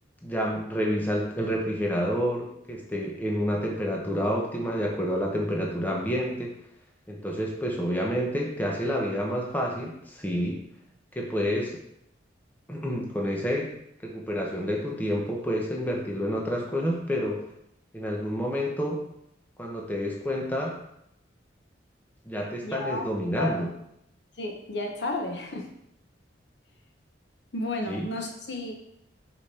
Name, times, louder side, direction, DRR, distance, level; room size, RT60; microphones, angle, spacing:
voice 1, 0.2-6.5 7.1-10.6 11.1-11.8 12.7-13.7 14.0-17.4 17.9-19.0 19.6-20.8 22.3-23.7 27.9-28.1, equal, 10° left, -1 dB, 0.9 m, -29 dB
voice 2, 22.6-23.0 23.3-23.6 24.4-25.7 27.5-28.7, left 2 dB, 65° left, 2 dB, 1.0 m, -32 dB
5.3 x 5.1 x 4.2 m, 0.78 s
head